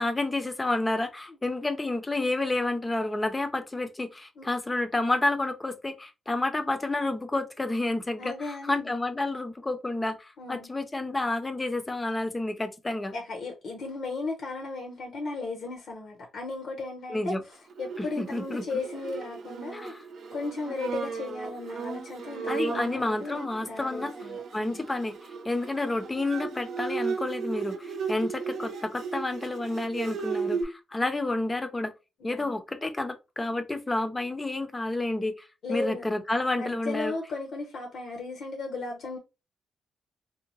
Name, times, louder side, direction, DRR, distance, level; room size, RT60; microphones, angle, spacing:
voice 1, 0.0-13.1 17.1-17.4 18.0-18.8 19.7-20.0 22.5-24.1 24.5-25.1 25.4-31.9 32.2-37.1, left 2 dB, 20° left, 0.5 m, -30 dB
voice 2, 8.2-9.0 10.4-10.7 13.1-19.9 20.3-24.9 31.0-31.1 32.2-32.5 35.6-36.0 36.5-39.2, left 3 dB, 70° left, 0.7 m, -36 dB
Bowed string instrument, 17.7-30.6, right 5 dB, 70° right, 0.7 m, -36 dB
2.6 x 2.1 x 2.9 m
cardioid pair, 95°, 0 cm